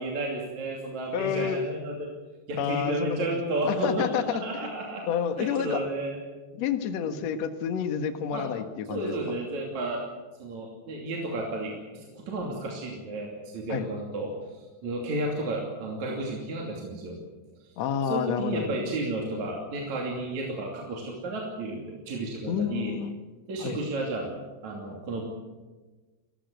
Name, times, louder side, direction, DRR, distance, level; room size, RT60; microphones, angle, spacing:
voice 1, 0.0-2.1 2.5-5.1 5.4-6.2 7.1-7.2 8.3-8.5 8.9-10.0 10.4-17.2 17.6-17.8 18.0-22.9 23.5-25.3, right 2 dB, 45° right, -1 dB, 3.8 m, -32 dB
voice 2, 1.1-1.6 2.6-3.4 3.7-4.7 5.1-5.8 6.5-9.1 13.7-13.9 17.8-18.7 22.5-23.1 23.6-23.8, left 8 dB, 60° left, 8 dB, 1.8 m, -29 dB
29.5 x 16.0 x 8.0 m, 1.3 s
omnidirectional pair, 5.1 m